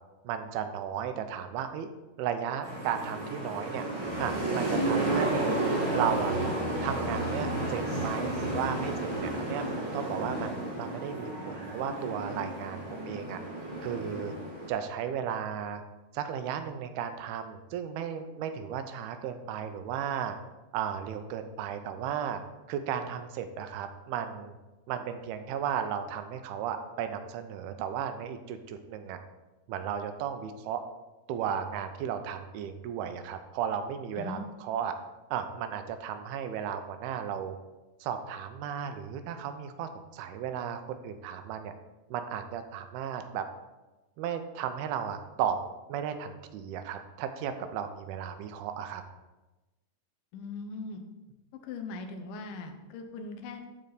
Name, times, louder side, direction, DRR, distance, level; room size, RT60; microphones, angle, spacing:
voice 1, 0.2-1.9 2.2-3.8 4.2-5.6 5.9-6.3 6.8-9.6 9.9-13.4 13.8-14.3 14.7-15.8 16.1-20.4 20.7-22.4 22.7-24.6 24.9-29.2 29.7-30.8 31.3-34.9 35.3-37.6 38.0-41.7 42.1-43.4 44.2-45.6 45.9-49.0, right 8 dB, 85° right, 8 dB, 2.6 m, -34 dB
sound 1, 2.6-14.7, right 1 dB, 60° right, 3.8 m, -32 dB
voice 2, 50.3-51.0 51.6-53.7, left 3 dB, 75° left, 5 dB, 2.2 m, -39 dB
12.5 x 4.3 x 4.0 m, 1.1 s
omnidirectional pair, 4.4 m